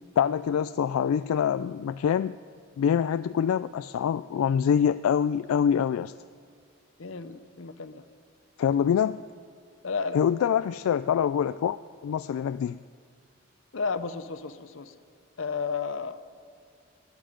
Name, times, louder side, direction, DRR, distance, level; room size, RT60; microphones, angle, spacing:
voice 1, 0.2-2.4 2.8-6.1 8.6-9.2 10.1-11.8 12.0-12.8, left 8 dB, 90° left, 13 dB, 0.3 m, -25 dB
voice 2, 7.0-8.0 9.8-10.2 13.7-14.9 15.4-16.2, left 5 dB, 70° left, 12 dB, 0.7 m, -32 dB
20.0 x 11.5 x 5.1 m, 2.2 s
head